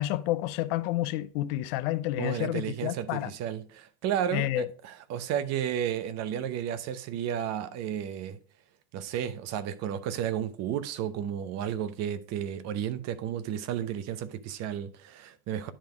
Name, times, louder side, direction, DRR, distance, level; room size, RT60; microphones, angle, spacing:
voice 1, 0.0-3.3 4.3-4.7, left 15 dB, 65° left, 0.6 m, -29 dB
voice 2, 2.2-8.4 8.9-15.7, right 9 dB, 55° right, 0.8 m, -32 dB
10.0 x 3.5 x 4.6 m
supercardioid pair, 100°, 32 cm